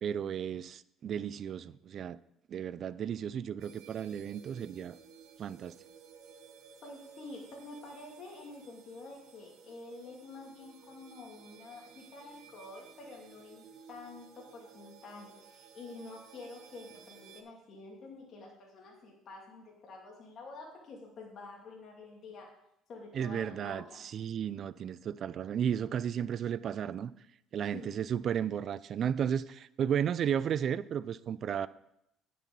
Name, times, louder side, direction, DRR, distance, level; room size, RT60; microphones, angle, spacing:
voice 1, 0.0-2.2 2.5-5.0 5.4-5.7 23.1-23.8 24.1-27.1 27.5-31.7, right 8 dB, 55° right, 0.4 m, -33 dB
sound 1, 3.6-17.4, right 7 dB, 75° right, 1.0 m, -56 dB
voice 2, 6.8-22.5 22.9-24.0 27.7-28.0, left 3 dB, 50° left, 2.6 m, -48 dB
10.0 x 6.2 x 5.4 m
supercardioid pair, 90°, 0 cm